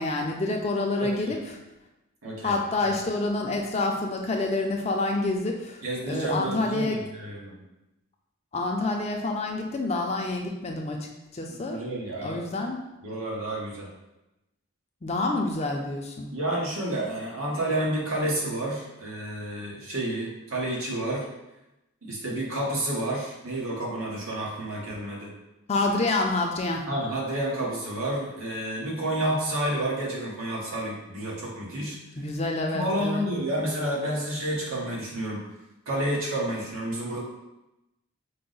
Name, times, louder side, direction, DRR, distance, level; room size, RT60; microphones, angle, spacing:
voice 1, 0.0-1.6 2.4-7.0 8.5-11.1 11.3-11.8 12.2-12.8 15.0-16.3 25.7-26.8 32.1-33.3, left 2 dB, 30° left, 2 dB, 0.4 m, -28 dB
voice 2, 2.2-2.6 5.8-7.6 11.5-12.4 13.0-13.9 16.3-21.3 22.0-25.3 26.9-32.0 32.7-35.5 35.9-37.2, right 1 dB, 80° right, -4 dB, 1.1 m, -30 dB
4.6 x 2.1 x 3.8 m, 0.96 s
head